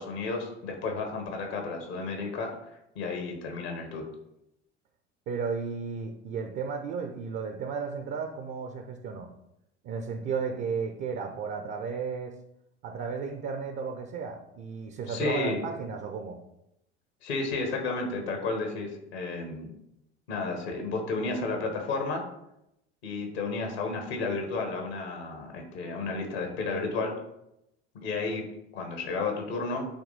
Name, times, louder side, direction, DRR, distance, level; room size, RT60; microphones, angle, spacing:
voice 1, 0.0-4.1 15.1-15.6 17.2-19.7 20.3-22.2 23.0-27.1 27.9-28.5 28.7-29.9, left 3 dB, 65° left, 3 dB, 1.4 m, -32 dB
voice 2, 5.3-9.3 9.8-12.3 12.8-16.4, right 5 dB, 35° right, 5 dB, 0.7 m, -34 dB
7.9 x 3.0 x 4.1 m, 0.84 s
figure-of-eight pair, 70°, 34 cm